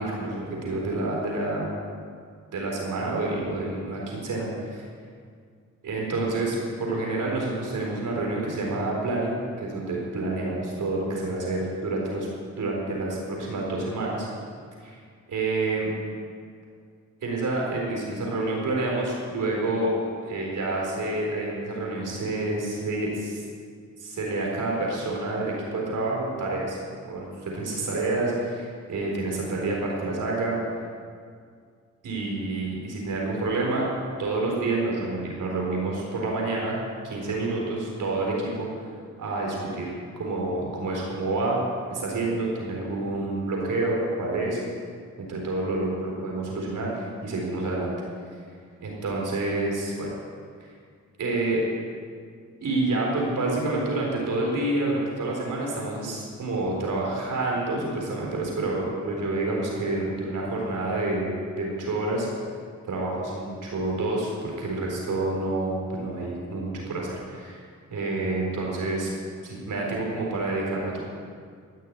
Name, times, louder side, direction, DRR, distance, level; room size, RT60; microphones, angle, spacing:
voice 1, 0.0-1.7 2.5-4.8 5.8-12.3 12.6-14.3 14.8-15.0 15.3-15.9 17.2-19.9 20.2-23.4 24.0-26.8 27.0-30.6 32.0-33.9 34.2-38.9 39.2-41.6 41.9-44.6 45.2-47.9 48.8-50.1 51.2-51.6 52.6-62.3 62.9-67.6 67.9-69.1 69.4-71.0, right 2 dB, 85° right, -2 dB, 4.2 m, -28 dB
15.5 x 6.8 x 9.8 m, 2.1 s
cardioid pair, 60°, 30 cm